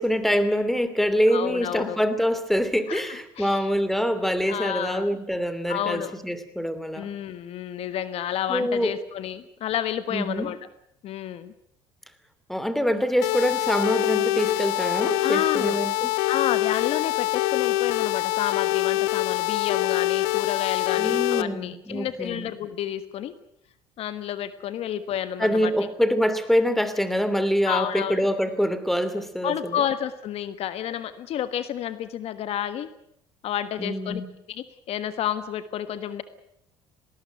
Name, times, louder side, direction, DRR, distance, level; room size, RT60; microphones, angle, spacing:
voice 1, 0.0-7.1 8.5-8.9 10.1-10.5 12.5-16.1 21.0-22.5 25.4-29.8 33.8-34.3, equal, ahead, 12 dB, 2.8 m, -25 dB
voice 2, 1.3-2.0 2.9-3.7 4.5-5.2 5.7-6.1 6.9-10.6 11.0-11.5 15.2-15.8 16.3-23.3 24.0-25.7 27.7-28.3 29.4-32.9 33.4-34.2 34.5-36.2, left 10 dB, 60° left, 12 dB, 1.4 m, -30 dB
sound 1, 13.2-21.4, left 18 dB, 90° left, 0.8 m, -24 dB
19.5 x 19.0 x 9.2 m, 0.74 s
supercardioid pair, 85°, 12 cm